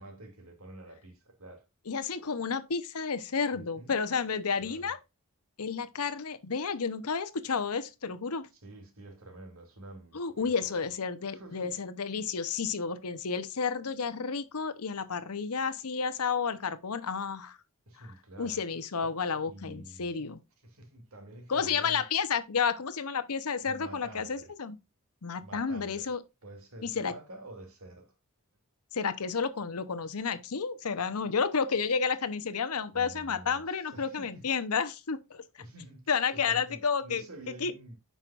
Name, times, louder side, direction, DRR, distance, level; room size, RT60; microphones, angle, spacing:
voice 1, 0.0-1.6 3.5-4.0 4.6-4.9 8.6-11.7 17.9-18.6 19.0-19.2 19.4-20.1 20.6-22.0 23.6-24.5 25.4-26.1 26.4-28.1 32.9-34.5 35.6-38.0, right 1 dB, 70° right, 2.6 m, -48 dB
voice 2, 1.9-5.0 5.6-8.5 10.1-17.6 18.4-20.4 21.5-24.8 25.2-26.2 26.8-27.1 28.9-35.4 36.1-37.2 37.6-37.7, left 5 dB, 80° left, 0.8 m, -31 dB
9.1 x 5.7 x 2.4 m
head